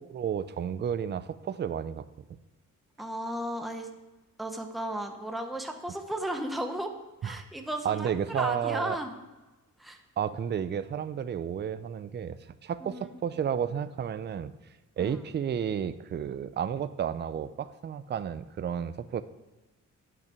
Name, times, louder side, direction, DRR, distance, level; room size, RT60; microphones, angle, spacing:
voice 1, 0.1-2.1 7.2-7.3 7.8-9.0 10.2-14.5 15.0-19.2, right 8 dB, 35° right, 13 dB, 0.4 m, -32 dB
voice 2, 3.0-3.9 4.4-6.9 7.2-9.1 9.8-10.0 12.8-13.1 15.0-15.2, right 1 dB, ahead, 4 dB, 0.9 m, -35 dB
9.5 x 5.9 x 5.8 m, 1.1 s
cardioid pair, 110°, 31 cm